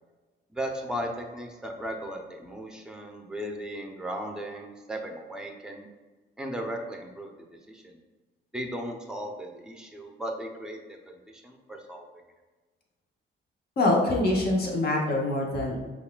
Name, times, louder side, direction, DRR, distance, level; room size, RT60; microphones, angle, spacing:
voice 1, 0.5-5.9 6.4-7.4 7.7-8.0 8.5-11.0 11.3-12.1, equal, 5° right, 2 dB, 0.6 m, -36 dB
voice 2, 13.8-15.9, left 2 dB, 50° left, -1 dB, 1.0 m, -25 dB
5.6 x 2.4 x 2.2 m, 1.3 s
cardioid pair, 90°, 20 cm